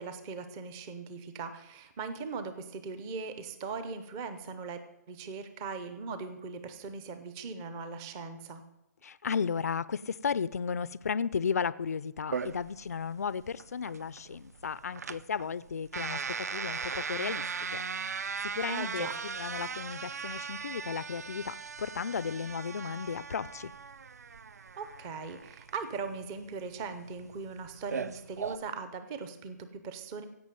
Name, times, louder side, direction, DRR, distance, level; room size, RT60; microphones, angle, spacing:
voice 1, 0.0-4.8 5.1-8.6 18.7-19.2 24.8-30.2, right 4 dB, 10° right, 10 dB, 0.5 m, -39 dB
voice 2, 9.0-23.7, left 6 dB, 55° left, 18 dB, 0.4 m, -34 dB
sound 1, 12.3-28.6, right 5 dB, 60° right, 0.6 m, -38 dB
16.0 x 5.8 x 9.0 m, 0.87 s
hypercardioid pair, 175°, 10 cm